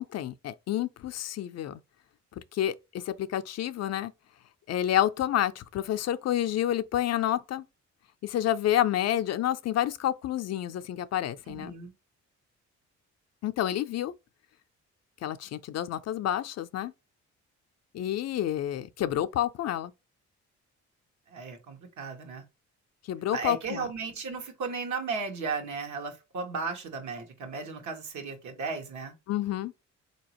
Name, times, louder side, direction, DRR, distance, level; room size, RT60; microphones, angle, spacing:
voice 1, 0.0-1.8 2.5-4.1 4.7-7.6 8.2-11.7 13.4-14.1 15.2-16.9 17.9-19.9 23.1-23.9 29.3-29.7, left 12 dB, 60° left, 0.5 m, -29 dB
voice 2, 11.5-11.9 21.3-22.4 23.3-29.1, right 4 dB, 70° right, 1.3 m, -35 dB
4.0 x 2.8 x 2.9 m
cardioid pair, 90°, 30 cm